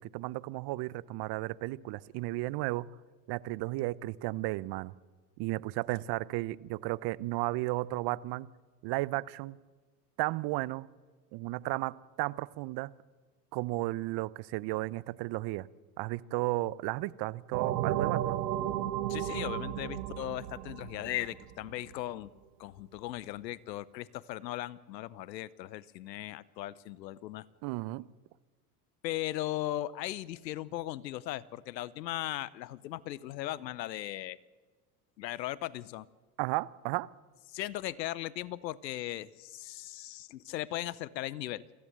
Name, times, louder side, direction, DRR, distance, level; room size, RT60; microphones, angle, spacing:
voice 1, 0.0-2.9 3.3-4.9 5.4-8.5 8.8-9.6 10.2-10.9 11.3-12.9 13.5-15.7 16.0-18.4 27.6-28.1 36.4-37.1, right 19 dB, 50° right, 21 dB, 0.7 m, -34 dB
sound 1, 17.5-21.9, right 12 dB, 80° right, 1.5 m, -34 dB
voice 2, 19.1-22.3 22.6-27.5 29.0-34.4 35.2-36.1 37.5-41.6, left 15 dB, 85° left, 21 dB, 0.8 m, -38 dB
23.5 x 15.0 x 7.5 m, 1.3 s
hypercardioid pair, 80°, 50 cm